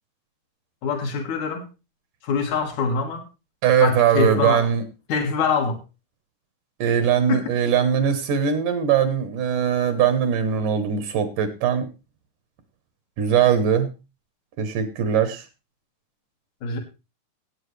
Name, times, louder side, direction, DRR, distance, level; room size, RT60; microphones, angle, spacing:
voice 1, 0.8-1.7 2.2-3.2 3.8-4.7 5.1-5.8 7.3-7.5 16.6-16.8, left 5 dB, 65° left, 5 dB, 3.2 m, -24 dB
voice 2, 3.6-4.8 6.8-11.9 13.2-13.9 14.6-15.4, right 8 dB, 80° right, 9 dB, 2.7 m, -21 dB
18.0 x 8.5 x 3.3 m, 0.28 s
omnidirectional pair, 3.6 m